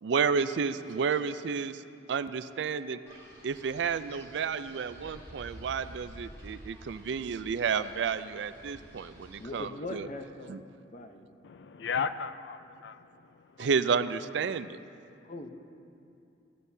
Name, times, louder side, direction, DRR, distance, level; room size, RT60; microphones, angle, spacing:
voice 1, 0.0-1.8 2.1-3.0 3.4-10.1 10.5-10.6 13.6-14.8, right 6 dB, 70° right, 13 dB, 0.4 m, -31 dB
Wind, 3.1-9.6, equal, 15° left, 3.0 m, -50 dB
voice 2, 9.4-10.6 10.9-11.3 15.2-15.5, left 2 dB, 40° left, 6 dB, 0.7 m, -40 dB
voice 3, 11.4-13.7, left 6 dB, 65° left, 12 dB, 0.4 m, -36 dB
17.0 x 11.5 x 2.7 m, 2.6 s
head